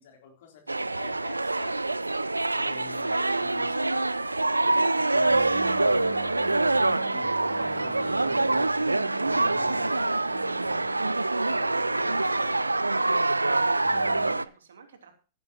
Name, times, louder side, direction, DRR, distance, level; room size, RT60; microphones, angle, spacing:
voice 1, 0.0-1.9 2.5-10.2, left 6 dB, 55° left, 3.7 m, -49 dB
sound 1, 0.7-14.4, right 2 dB, 85° right, 0.5 m, -25 dB
voice 2, 2.7-3.1 11.9-15.1, right 5 dB, 70° right, 3.1 m, -51 dB
Bowed string instrument, 2.8-13.2, right 1 dB, 50° right, 2.6 m, -49 dB
sound 2, 5.3-11.1 11.5-12.6 13.8-14.3, right 1 dB, 25° left, 3.6 m, -47 dB
15.5 x 11.0 x 2.9 m
figure-of-eight pair, 100°, 0 cm